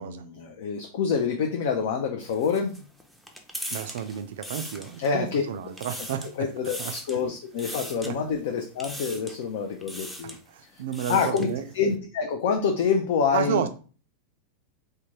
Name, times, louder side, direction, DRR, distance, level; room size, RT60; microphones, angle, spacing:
voice 1, 0.0-2.8 5.0-5.4 6.4-10.3 11.1-11.5 11.7-13.7, left 6 dB, 55° left, 3 dB, 0.4 m, -27 dB
sound 1, 2.2-5.3 5.6-6.3 6.6-7.2 7.6-8.1 8.8-9.4 9.8-10.4 10.8-11.5, equal, ahead, 0.5 m, -39 dB
voice 2, 3.7-6.3 6.8-6.9 7.7-8.1 10.5-11.6 13.3-13.7, right 8 dB, 55° right, 8 dB, 0.4 m, -31 dB
3.3 x 2.2 x 3.0 m, 0.38 s
figure-of-eight pair, 90°, 0 cm